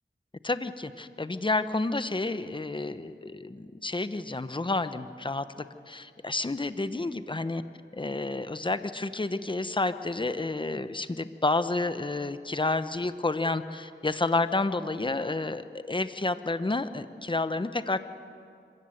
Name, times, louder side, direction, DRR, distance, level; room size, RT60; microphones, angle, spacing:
voice 1, 0.4-7.6 7.9-18.0, left 2 dB, 25° left, 11 dB, 0.9 m, -30 dB
26.0 x 15.5 x 8.0 m, 2.4 s
wide cardioid pair, 55°, 20 cm